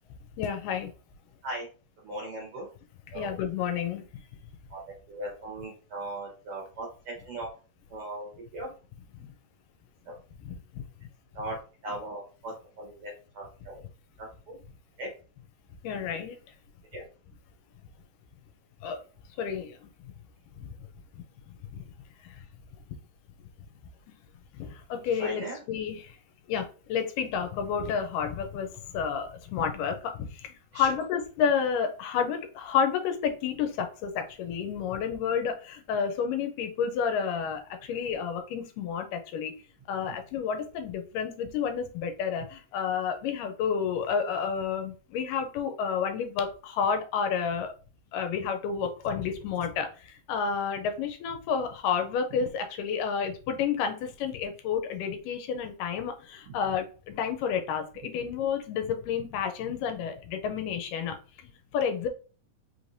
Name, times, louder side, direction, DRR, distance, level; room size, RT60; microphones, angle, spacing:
voice 1, 0.4-0.9 3.1-4.2 9.2-9.3 10.5-10.8 15.8-16.4 18.8-19.0 19.4-19.9 20.6-20.7 21.7-21.9 22.2-22.5 24.5-26.2 26.5-39.6 39.9-47.7 48.1-62.1, left 7 dB, 80° left, 6 dB, 2.2 m, -30 dB
voice 2, 2.0-2.7 3.1-3.3 4.7-7.5 7.9-8.7 10.0-10.1 11.3-11.5 11.8-13.8 14.2-14.6 15.0-15.1 16.9-17.0 25.0-25.6 30.7-30.9, right 1 dB, 65° right, -2 dB, 1.5 m, -38 dB
5.3 x 3.2 x 2.6 m, 0.37 s
omnidirectional pair, 3.8 m